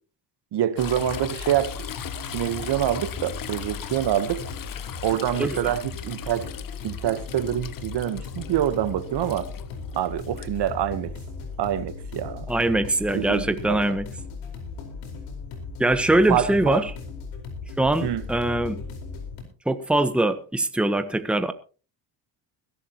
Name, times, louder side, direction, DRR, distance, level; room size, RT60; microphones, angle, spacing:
voice 1, 0.5-1.9 2.3-4.4 5.0-6.5 6.8-9.5 9.9-11.1 11.6-12.5 13.1-13.8 16.3-16.8 18.0-18.2, right 11 dB, 55° right, 1.2 m, -26 dB
sound 1, 0.8-19.4, left 4 dB, 80° left, 4.7 m, -37 dB
Toilet flush / Trickle dribble, 0.8-10.5 12.3-12.4, left 10 dB, 45° left, 1.1 m, -39 dB
voice 2, 5.4-5.7 12.5-14.1 15.8-16.9 17.8-18.8 19.6-21.5, right 1 dB, ahead, 1.1 m, -22 dB
21.0 x 12.0 x 3.0 m
supercardioid pair, 90°, 48 cm